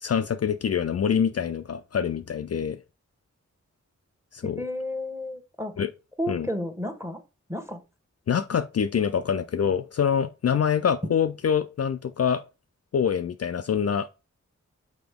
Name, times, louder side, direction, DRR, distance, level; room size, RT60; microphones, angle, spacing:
voice 1, 0.0-2.8 4.3-4.6 5.8-5.9 6.3-6.5 8.3-12.4 12.9-14.1, left 7 dB, 55° left, 0.4 m, -25 dB
voice 2, 4.6-5.7 6.2-7.2 7.5-7.8, left 1 dB, 10° right, 1.2 m, -32 dB
6.0 x 4.4 x 3.5 m
wide cardioid pair, 65°, 30 cm